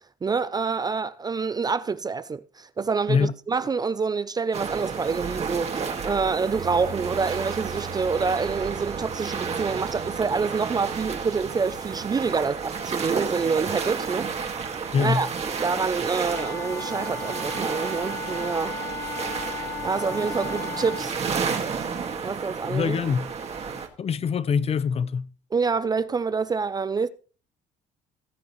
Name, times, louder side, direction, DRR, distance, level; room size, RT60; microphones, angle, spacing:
voice 1, 0.2-14.3 15.0-15.3 15.6-18.8 19.8-21.1 22.2-23.0 25.5-27.1, right 5 dB, 25° right, 0.4 m, -27 dB
sound 1, 4.5-23.9, right 5 dB, 40° right, 2.0 m, -31 dB
sound 2, 6.5-16.7, right 7 dB, 55° right, 1.8 m, -45 dB
voice 2, 14.9-15.2 22.6-23.3 24.0-25.3, left 6 dB, 35° left, 0.6 m, -24 dB
Wind instrument woodwind instrument, 16.3-21.1, left 4 dB, 20° left, 1.3 m, -35 dB
18.5 x 7.9 x 3.1 m
cardioid pair, 110°, 17 cm